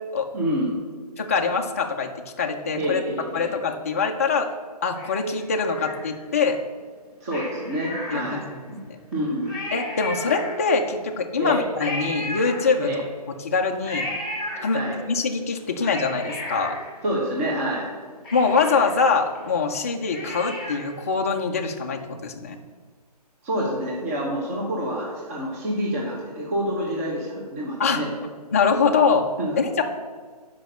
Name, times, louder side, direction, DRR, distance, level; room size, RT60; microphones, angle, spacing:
voice 1, 0.3-0.7 2.7-3.5 7.2-8.8 9.1-9.5 11.4-11.6 12.8-13.0 14.7-15.0 17.0-17.9 23.4-28.1 29.4-29.6, equal, 20° right, -3 dB, 1.0 m, -27 dB
voice 2, 1.2-2.1 2.4-3.0 3.3-4.5 4.8-6.6 8.1-8.4 8.8-9.0 9.7-12.9 13.4-14.1 14.6-14.8 15.1-16.8 18.3-22.6 27.8-28.0 28.5-29.3 29.6-29.8, left 5 dB, 20° left, 3 dB, 0.4 m, -23 dB
Cat, 4.9-6.4 7.3-8.7 9.1-9.2 9.4-10.9 11.8-13.1 13.8-15.1 15.6-17.6 17.9-18.0 18.2-21.0 21.4-21.5, left 1 dB, ahead, 1.7 m, -35 dB
6.2 x 5.1 x 6.7 m, 1.5 s
hypercardioid pair, 165°, 21 cm